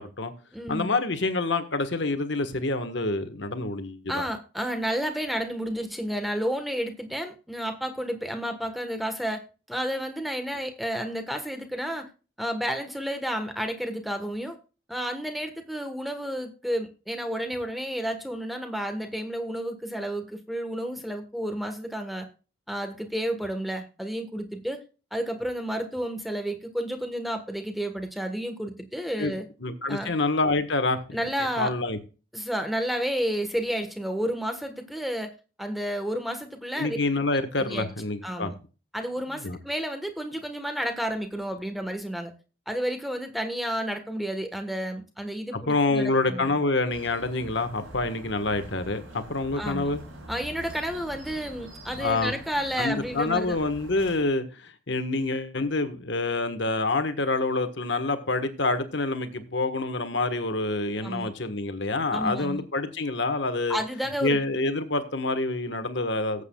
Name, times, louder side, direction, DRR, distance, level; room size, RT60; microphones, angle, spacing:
voice 1, 0.0-0.3 0.7-4.2 29.2-29.3 29.6-31.2 31.6-32.0 36.8-38.5 39.3-39.6 45.5-50.0 51.9-52.3 52.8-63.8 64.2-66.4, left 2 dB, 60° left, 1.4 m, -27 dB
voice 2, 0.5-0.9 4.1-9.4 9.7-12.1 12.4-14.6 14.9-22.3 22.7-24.8 25.1-29.4 29.9-30.1 31.1-31.7 32.3-35.3 35.6-37.0 37.6-37.9 38.2-38.5 38.9-42.3 42.7-46.5 49.6-49.9 50.3-53.6 61.0-61.3 62.1-62.6 63.7-64.4, equal, ahead, 1.3 m, -31 dB
sound 1, 46.9-54.3, right 1 dB, 90° right, 6.5 m, -44 dB
18.5 x 8.2 x 2.3 m
head